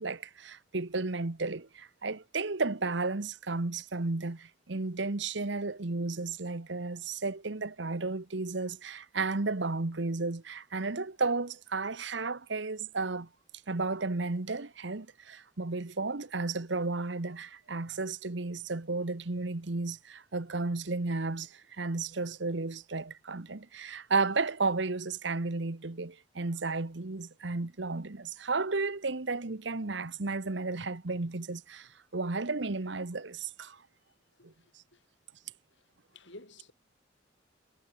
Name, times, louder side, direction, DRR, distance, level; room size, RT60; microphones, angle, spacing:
voice 1, 0.0-13.3 13.7-33.8 34.4-34.5, right 3 dB, 70° right, 1.1 m, -33 dB
voice 2, 34.4-35.1 35.7-36.7, left 2 dB, 70° left, 7.8 m, -54 dB
head